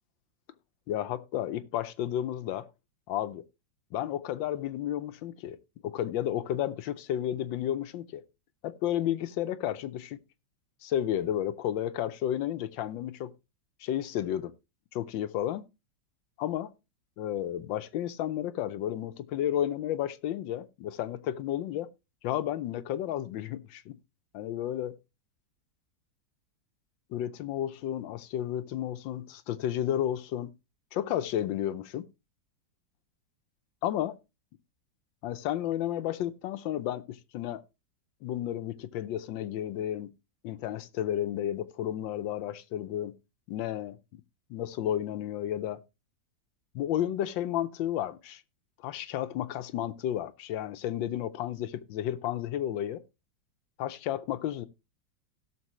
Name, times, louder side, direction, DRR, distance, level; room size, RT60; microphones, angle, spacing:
voice 1, 0.9-2.7 3.1-3.4 3.9-5.6 5.8-8.2 8.6-10.2 10.8-13.3 13.8-14.5 14.9-15.6 16.4-16.7 17.2-21.9 22.2-24.0 24.3-25.0 27.1-30.5 30.9-32.1 33.8-34.2 35.2-37.6 38.2-40.1 40.4-43.1 43.5-44.2 44.5-45.8 46.7-48.4 48.8-53.0 53.8-54.7, left 11 dB, 85° left, 1.4 m, -32 dB
17.0 x 6.6 x 3.0 m
omnidirectional pair, 2.0 m